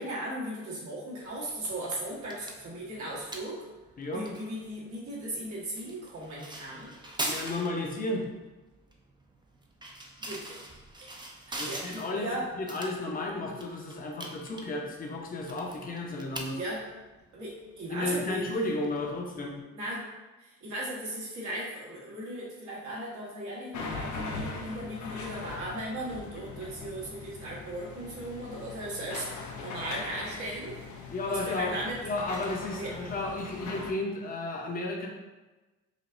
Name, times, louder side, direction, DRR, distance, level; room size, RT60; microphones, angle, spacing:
voice 1, 0.0-3.6 4.1-6.9 10.2-10.6 11.5-12.5 16.5-16.8 17.3-18.5 19.7-20.1 20.4-30.8 31.3-32.0 32.7-33.0, right 1 dB, 70° right, -5 dB, 1.4 m, -37 dB
sound 1, 1.2-19.6, right 1 dB, 15° right, 0.5 m, -43 dB
voice 2, 4.0-4.3 7.2-8.3 11.6-12.3 12.6-16.6 17.9-19.6 31.1-31.7 32.0-35.1, left 2 dB, 30° left, 0 dB, 0.7 m, -33 dB
sound 2, 23.7-33.9, left 3 dB, 75° left, 0.7 m, -41 dB
5.0 x 2.6 x 2.5 m, 1.1 s
cardioid pair, 90°, 30 cm